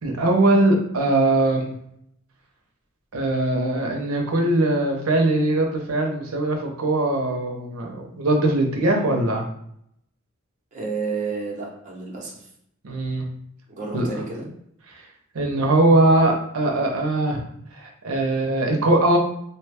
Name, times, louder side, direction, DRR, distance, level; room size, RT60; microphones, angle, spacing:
voice 1, 0.0-1.7 3.1-9.4 12.8-13.2 13.9-14.1 15.3-17.4 17.7-19.2, right 2 dB, 85° right, 2 dB, 0.6 m, -21 dB
voice 2, 10.7-12.4 13.7-14.5, right 4 dB, 35° right, -2 dB, 0.8 m, -30 dB
2.8 x 2.2 x 3.3 m, 0.72 s
head